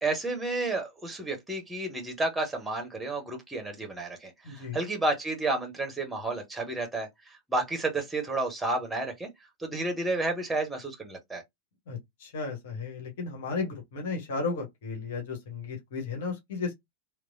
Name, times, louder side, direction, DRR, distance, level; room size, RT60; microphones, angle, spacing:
voice 1, 0.0-9.3 9.6-11.4, right 2 dB, 10° right, 1.0 m, -31 dB
voice 2, 4.4-4.8 11.9-16.7, left 4 dB, 55° left, 1.2 m, -34 dB
3.2 x 2.0 x 2.6 m
figure-of-eight pair, 90°, 0 cm